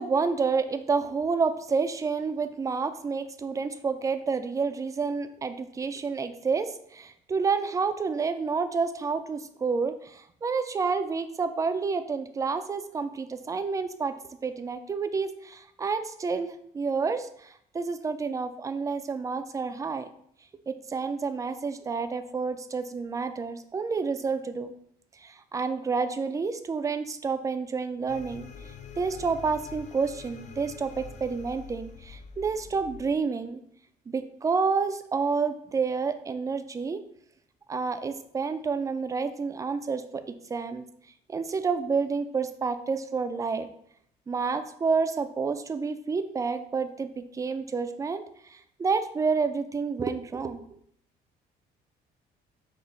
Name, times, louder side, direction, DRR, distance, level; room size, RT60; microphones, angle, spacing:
voice 1, 0.0-14.1 14.4-20.1 20.7-24.7 25.2-28.5 29.0-33.6 34.1-37.0 37.7-40.9 41.3-43.7 44.3-50.8, right 5 dB, 20° right, 10 dB, 0.3 m, -29 dB
sound 1, 28.1-33.1, left 6 dB, 45° left, 0.5 m, -45 dB
5.4 x 2.1 x 3.8 m, 0.66 s
cardioid pair, 110°, 17 cm